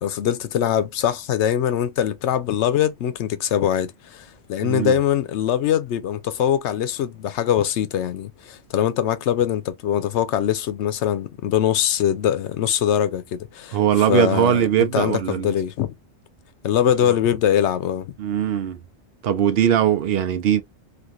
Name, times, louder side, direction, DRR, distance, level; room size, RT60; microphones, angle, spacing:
voice 1, 0.0-13.8 14.1-15.9 16.6-18.1, left 10 dB, 85° left, 0.9 m, -22 dB
voice 2, 4.6-5.0 13.7-15.5 18.2-18.8 19.2-20.6, right 10 dB, 65° right, 0.8 m, -20 dB
3.1 x 2.5 x 2.4 m
omnidirectional pair, 1.1 m